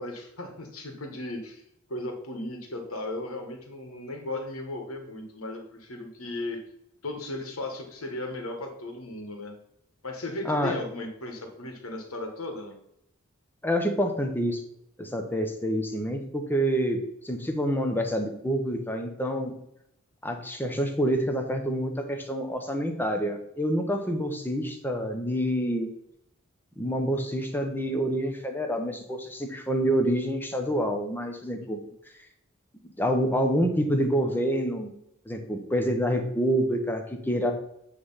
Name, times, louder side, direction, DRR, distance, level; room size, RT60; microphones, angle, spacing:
voice 1, 0.0-1.6 1.9-6.6 7.0-9.5 10.0-12.7, left 2 dB, 85° left, 3 dB, 1.6 m, -36 dB
voice 2, 10.4-10.8 13.6-14.6 15.0-19.6 20.2-25.9 26.8-31.8 32.8-34.9 35.3-37.5, equal, 10° left, 4 dB, 0.9 m, -27 dB
8.5 x 3.3 x 5.6 m, 0.77 s
head